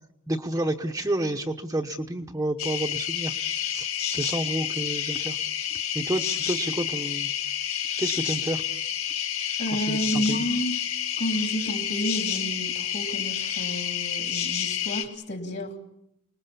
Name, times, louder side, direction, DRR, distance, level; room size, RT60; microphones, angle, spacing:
voice 1, 0.3-3.3 3.7-5.4 5.9-7.3 8.0-8.6 9.8-10.4, right 1 dB, 15° right, 2 dB, 1.0 m, -30 dB
sound 1, 2.6-15.1, left 9 dB, 65° left, 2.1 m, -29 dB
voice 2, 9.6-10.8 11.2-15.8, equal, 50° left, 4 dB, 3.2 m, -30 dB
29.0 x 20.0 x 7.1 m, 0.78 s
head